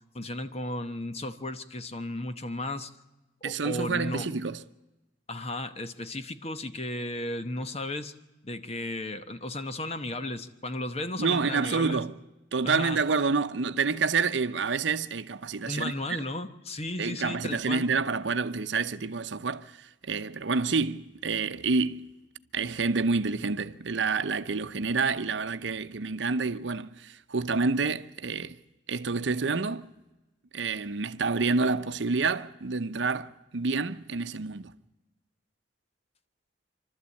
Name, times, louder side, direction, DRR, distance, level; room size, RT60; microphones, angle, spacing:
voice 1, 0.1-2.9 3.4-4.3 5.3-8.1 8.4-12.0 12.6-13.0 15.6-17.8, left 1 dB, 35° left, 1.0 m, -34 dB
voice 2, 3.4-4.6 11.2-12.1 12.5-15.9 17.0-22.1 22.5-28.6 28.9-29.9 30.5-34.7, right 4 dB, 70° right, 0.7 m, -28 dB
27.0 x 12.5 x 8.4 m
head